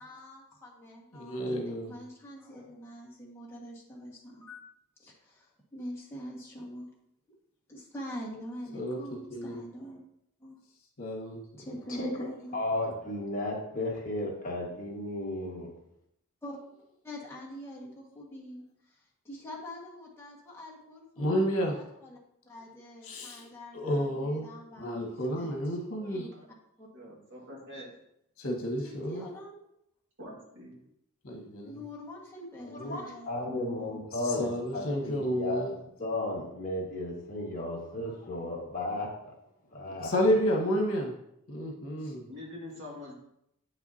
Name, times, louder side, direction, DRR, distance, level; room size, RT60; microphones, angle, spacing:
voice 1, 0.0-4.6 5.0-6.9 7.7-10.0 10.4-10.6 11.6-12.6 16.4-16.6 17.0-22.2 22.4-26.3 26.8-26.9 28.8-29.6 31.6-33.3 34.2-34.4 34.7-34.9 42.0-42.2, equal, 10° left, -4 dB, 1.7 m, -45 dB
voice 2, 1.1-1.9 8.7-9.0 9.3-9.6 11.0-11.4 21.2-21.8 23.0-23.4 23.7-24.5 24.8-26.2 28.4-29.2 31.2-31.8 34.2-35.7 39.9-41.1 41.5-42.3, equal, 70° left, 0 dB, 1.5 m, -30 dB
voice 3, 11.9-15.7 32.6-39.1 39.7-40.2, left 1 dB, 40° left, -3 dB, 1.7 m, -34 dB
voice 4, 26.9-27.9 30.2-30.8 42.3-43.1, left 1 dB, 55° right, -3 dB, 2.1 m, -44 dB
8.6 x 5.8 x 2.8 m, 0.78 s
head